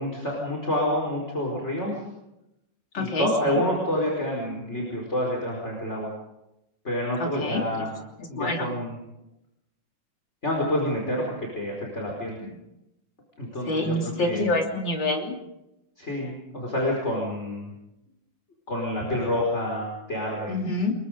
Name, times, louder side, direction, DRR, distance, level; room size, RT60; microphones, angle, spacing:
voice 1, 0.0-2.1 2.9-6.1 6.8-7.9 8.3-9.0 10.4-12.4 13.4-14.0 14.2-14.5 16.0-17.7 18.7-20.6, left 1 dB, 35° left, -2 dB, 5.1 m, -28 dB
voice 2, 2.9-3.6 7.2-7.9 8.3-8.7 13.7-15.4 20.5-20.9, left 2 dB, 70° left, 1 dB, 3.9 m, -27 dB
28.5 x 22.5 x 5.2 m, 0.89 s
omnidirectional pair, 2.1 m